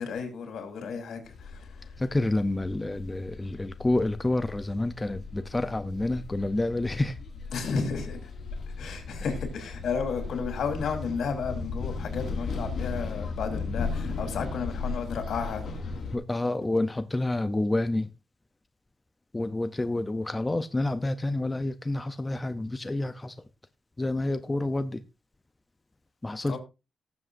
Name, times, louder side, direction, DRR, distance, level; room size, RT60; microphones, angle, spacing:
voice 1, 0.0-1.9 7.5-8.3 8.8-15.6 26.5-26.6, left 5 dB, 80° left, 3.2 m, -33 dB
sound 1, 1.3-16.2, left 4 dB, 50° left, 4.2 m, -36 dB
voice 2, 2.0-7.1 16.1-18.1 19.3-23.4 24.0-25.0 26.2-26.6, left 2 dB, 15° left, 0.6 m, -28 dB
19.0 x 7.5 x 2.6 m
wide cardioid pair, 125°, 0 cm